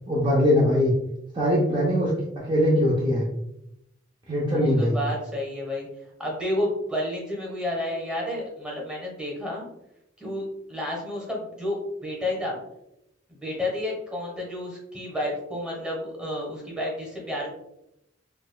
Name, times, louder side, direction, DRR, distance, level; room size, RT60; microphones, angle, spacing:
voice 1, 0.1-0.9 1.3-2.1 2.4-3.3 4.3-5.0, left 1 dB, 25° right, -6 dB, 0.6 m, -21 dB
voice 2, 4.5-5.9 6.2-9.6 10.2-12.6 13.3-17.5, left 1 dB, 5° right, -3 dB, 1.0 m, -31 dB
4.7 x 2.3 x 2.2 m, 0.83 s
head